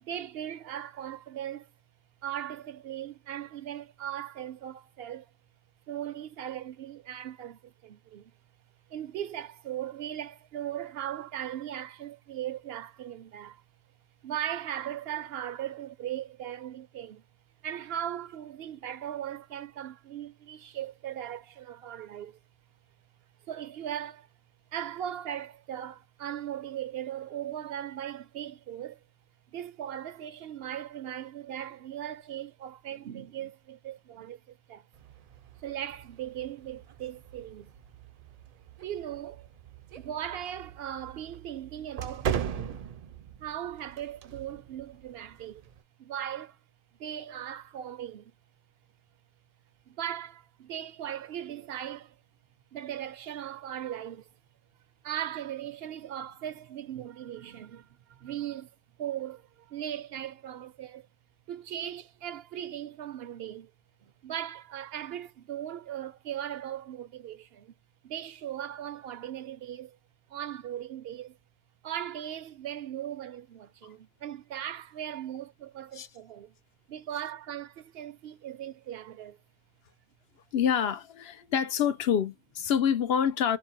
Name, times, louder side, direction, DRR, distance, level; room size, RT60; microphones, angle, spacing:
voice 1, 0.0-1.7 2.2-5.3 5.9-8.3 8.9-13.6 14.2-17.2 17.6-22.4 23.5-24.3 24.7-29.0 29.5-34.9 35.6-37.7 38.8-39.5 40.0-42.8 43.4-45.6 46.0-46.6 47.0-48.3 49.9-52.2 52.7-54.3 55.0-58.7 59.0-61.1 61.5-63.7 64.0-67.7 68.0-70.0 70.3-71.4 71.8-76.5 76.9-79.4, right 11 dB, 75° right, 0.8 m, -38 dB
sound 1, 34.9-45.8, right 9 dB, 55° right, 0.4 m, -40 dB
voice 2, 80.5-83.6, left 8 dB, 80° left, 0.9 m, -27 dB
4.6 x 2.9 x 2.5 m
omnidirectional pair, 1.1 m